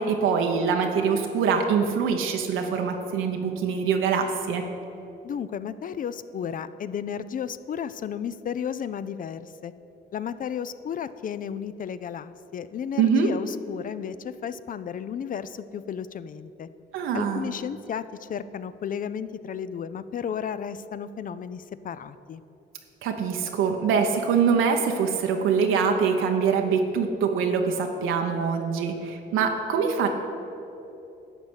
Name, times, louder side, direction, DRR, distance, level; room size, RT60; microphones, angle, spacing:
voice 1, 0.0-4.6 13.0-13.3 16.9-17.5 23.0-30.1, right 6 dB, 85° right, 3 dB, 0.8 m, -24 dB
voice 2, 5.2-9.7 10.1-16.7 17.1-22.4, left 8 dB, 45° left, 14 dB, 0.4 m, -33 dB
11.5 x 4.2 x 8.0 m, 2.8 s
cardioid pair, 90°, 20 cm